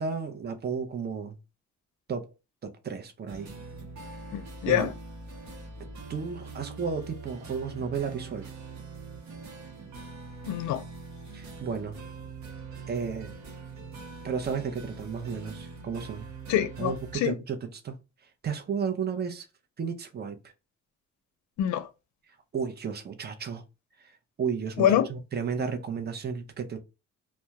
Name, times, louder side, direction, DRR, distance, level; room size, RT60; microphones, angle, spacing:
voice 1, 0.0-1.4 2.1-2.3 2.6-3.5 4.7-4.9 6.1-8.5 11.3-12.0 12.9-13.3 14.2-16.3 16.8-18.0 18.4-19.5 19.8-20.4 22.5-23.6 24.0-24.1 24.4-26.8, right 6 dB, 35° right, 0.6 m, -33 dB
sound 1, 3.3-17.2, right 4 dB, 65° right, 0.8 m, -43 dB
voice 2, 4.3-4.9 10.5-10.8 16.5-17.3 21.6-21.9 24.8-25.1, left 11 dB, 70° left, 0.5 m, -25 dB
2.2 x 2.2 x 2.8 m
cardioid pair, 90°, 30 cm